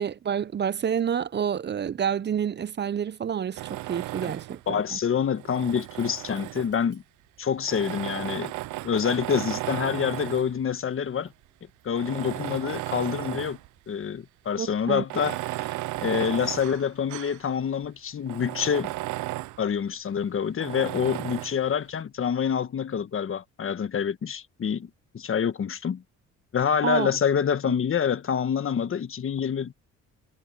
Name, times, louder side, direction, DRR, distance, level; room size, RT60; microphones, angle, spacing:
voice 1, 0.0-5.0 14.6-15.0 26.8-27.1 27.6-27.7, right 8 dB, 35° right, 0.6 m, -29 dB
Tools, 3.6-4.7 5.3-7.0 7.6-10.6 11.3-11.4 11.9-13.7 14.0-14.1 15.0-17.4 17.8-17.9 18.3-19.6 20.6-21.6, right 18 dB, 75° right, 0.5 m, -34 dB
voice 2, 4.7-7.0 7.4-8.5 8.8-11.3 11.8-13.6 13.9-18.9 19.6-24.9 25.1-26.0 26.5-29.7, left 7 dB, 45° left, 1.2 m, -27 dB
cardioid pair, 90°, 30 cm